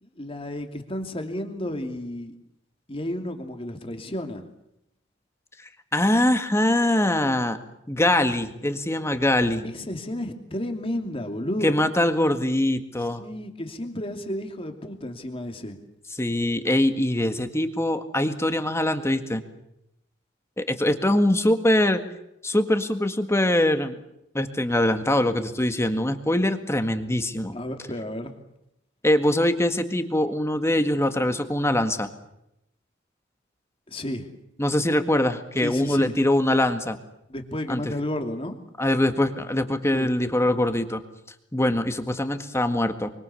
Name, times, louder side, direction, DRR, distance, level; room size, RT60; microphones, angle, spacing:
voice 1, 0.0-2.3 2.9-4.4 9.6-11.8 13.2-15.8 27.5-28.3 33.9-34.3 35.6-36.2 37.3-38.5 39.9-40.1, left 1 dB, 30° left, 5 dB, 2.8 m, -32 dB
voice 2, 5.9-7.6 7.9-9.6 11.6-13.2 16.2-19.4 20.6-22.0 22.4-24.0 24.3-27.6 29.0-32.1 34.6-37.0 37.7-37.9 38.8-41.0 41.5-43.1, left 1 dB, 15° left, 8 dB, 1.8 m, -23 dB
25.0 x 24.5 x 7.1 m, 0.82 s
head